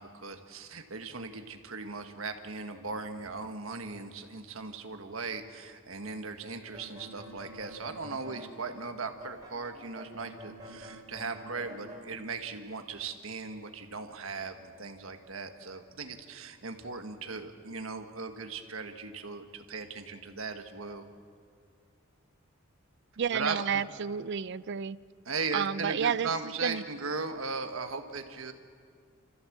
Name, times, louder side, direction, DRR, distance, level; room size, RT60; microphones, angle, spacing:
voice 1, 0.0-21.0 23.3-23.8 25.2-28.5, right 4 dB, 75° right, 6 dB, 1.5 m, -38 dB
sound 1, 6.6-8.5 9.2-12.0, equal, 20° right, 5.2 m, -47 dB
voice 2, 23.2-25.0 25.5-26.8, right 7 dB, 55° right, 18 dB, 0.4 m, -31 dB
28.0 x 14.5 x 7.3 m, 2.2 s
head